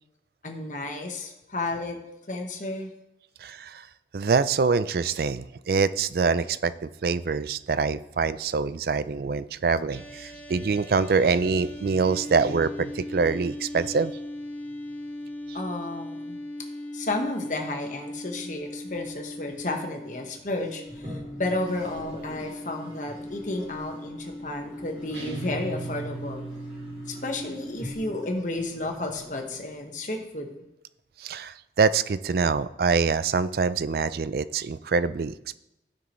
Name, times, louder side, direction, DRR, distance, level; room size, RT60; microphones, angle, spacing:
voice 1, 0.4-2.0 2.3-2.9 15.5-16.4 16.9-26.4 27.1-30.5, left 2 dB, 45° left, 2 dB, 1.3 m, -32 dB
voice 2, 3.4-3.8 4.1-14.1 31.2-35.6, right 4 dB, 55° right, 15 dB, 0.4 m, -25 dB
sound 1, 9.9-28.3, left 1 dB, 10° left, 0.7 m, -39 dB
Toilet flush, 20.8-29.9, equal, 30° right, 2.9 m, -45 dB
sound 2, 25.1-27.7, right 4 dB, 85° right, 1.7 m, -38 dB
16.0 x 6.0 x 3.2 m, 0.88 s
head